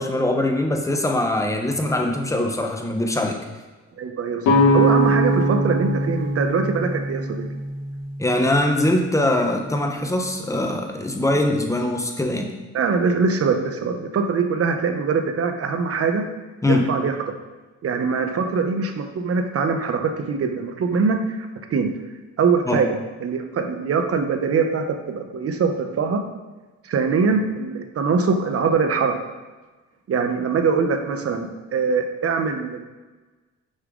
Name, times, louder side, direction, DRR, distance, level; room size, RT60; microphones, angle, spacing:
voice 1, 0.0-3.4 8.2-12.5 16.6-16.9 22.7-22.8, left 1 dB, 10° left, 3 dB, 1.0 m, -22 dB
voice 2, 4.0-7.4 12.7-16.2 16.7-17.1 17.8-21.4 21.7-21.9 22.4-23.0 23.2-26.2 26.8-29.1 30.1-32.8, right 5 dB, 50° right, 6 dB, 0.9 m, -22 dB
sound 1, 4.4-8.2, equal, 80° left, 1.6 m, -21 dB
6.4 x 5.7 x 3.9 m, 1.2 s
cardioid pair, 90°, 30 cm